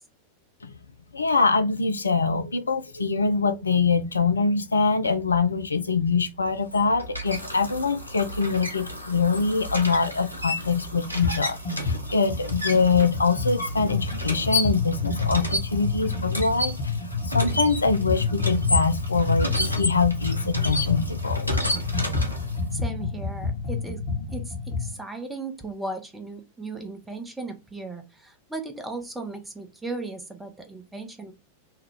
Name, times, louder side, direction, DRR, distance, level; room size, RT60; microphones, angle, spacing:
voice 1, 1.1-21.7, left 4 dB, 75° left, 0.3 m, -24 dB
sound 1, 6.5-22.7, left 1 dB, 90° right, 0.7 m, -32 dB
sound 2, 11.2-11.4 11.6-24.9, left 4 dB, 45° left, 1.1 m, -29 dB
voice 2, 22.7-24.0 24.3-31.3, right 3 dB, 10° right, 0.6 m, -36 dB
2.8 x 2.3 x 3.5 m
figure-of-eight pair, 90°, 0 cm